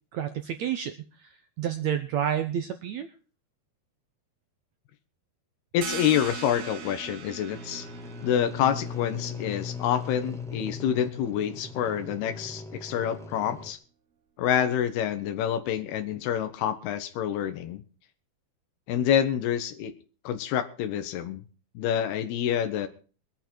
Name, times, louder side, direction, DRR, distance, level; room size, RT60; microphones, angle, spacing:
voice 1, 0.1-3.1, right 9 dB, 80° right, 9 dB, 1.6 m, -30 dB
voice 2, 5.7-7.9 8.2-13.8 14.4-17.8 18.9-19.9 20.2-21.4 21.8-22.9, left 9 dB, 85° left, 8 dB, 3.1 m, -27 dB
sound 1, 5.8-11.2, right 7 dB, 60° right, 1.8 m, -41 dB
sound 2, 7.5-13.7, left 4 dB, ahead, 0.6 m, -39 dB
22.5 x 9.0 x 4.5 m, 0.38 s
omnidirectional pair, 4.4 m